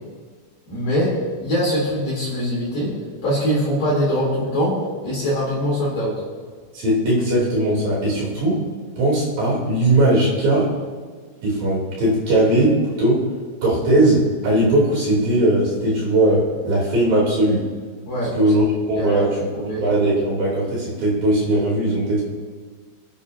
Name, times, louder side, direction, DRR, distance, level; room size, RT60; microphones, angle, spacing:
voice 1, 0.7-1.1 1.4-2.9 3.2-6.2 18.1-18.5 18.9-19.3 19.5-19.9, equal, 50° left, -8 dB, 4.9 m, -22 dB
voice 2, 6.7-8.6 9.0-10.7 11.4-13.2 13.6-17.7 18.4-19.5 19.8-22.2, right 1 dB, 50° right, -6 dB, 4.9 m, -19 dB
25.5 x 9.9 x 2.8 m, 1.5 s
omnidirectional pair, 5.7 m